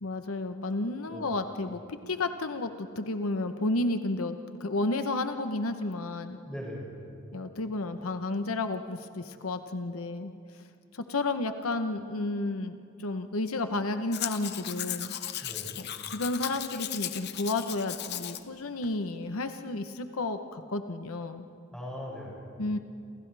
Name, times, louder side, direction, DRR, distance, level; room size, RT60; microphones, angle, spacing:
voice 1, 0.0-6.4 7.3-10.3 10.9-15.1 15.8-21.5 22.6-22.8, left 2 dB, 85° left, 8 dB, 0.9 m, -32 dB
voice 2, 6.4-7.0 15.4-15.8 21.7-22.5, equal, 5° left, -5 dB, 6.8 m, -40 dB
Domestic sounds home sounds, 14.1-18.4 18.8-18.9, left 11 dB, 50° left, 0.8 m, -36 dB
28.5 x 27.5 x 3.4 m, 2.4 s
head